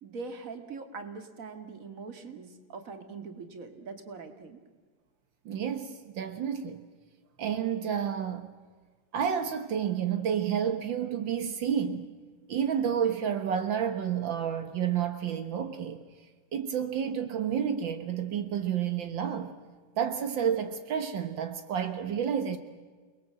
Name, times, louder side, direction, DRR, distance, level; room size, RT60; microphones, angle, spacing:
voice 1, 0.0-4.6, right 4 dB, 35° right, 1.6 m, -42 dB
voice 2, 5.4-6.8 7.4-8.5 9.1-12.1 12.5-16.0 16.5-19.5 20.0-22.6, right 8 dB, 85° right, 1.0 m, -30 dB
29.0 x 21.0 x 7.7 m
omnidirectional pair, 4.0 m